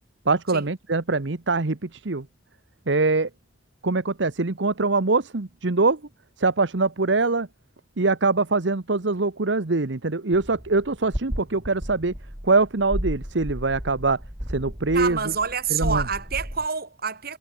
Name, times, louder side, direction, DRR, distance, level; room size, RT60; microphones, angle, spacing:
voice 1, 0.3-2.3 2.9-3.3 3.8-6.0 6.4-7.5 8.0-12.1 12.4-14.2 14.5-15.2 15.7-16.0, right 3 dB, 75° right, 1.1 m, -23 dB
sound 1, 10.3-16.7, equal, 25° right, 4.3 m, -33 dB
voice 2, 14.9-17.4, right 6 dB, 55° right, 5.8 m, -27 dB
head